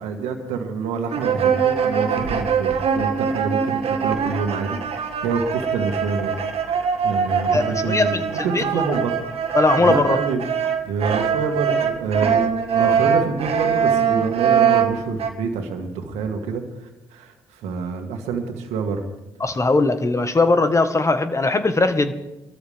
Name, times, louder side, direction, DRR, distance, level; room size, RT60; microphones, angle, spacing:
voice 1, 0.0-6.4 6.6-9.2 9.8-10.4 10.8-12.5 12.7-19.1, right 5 dB, 80° right, 4 dB, 2.0 m, -27 dB
sound 1, 1.1-15.3, right 7 dB, 60° right, 1.8 m, -22 dB
voice 2, 7.5-9.0 9.5-10.2 12.7-13.0 19.4-22.2, left 3 dB, 25° left, 8 dB, 1.7 m, -20 dB
22.5 x 13.5 x 3.7 m, 1.0 s
hypercardioid pair, 50°, 11 cm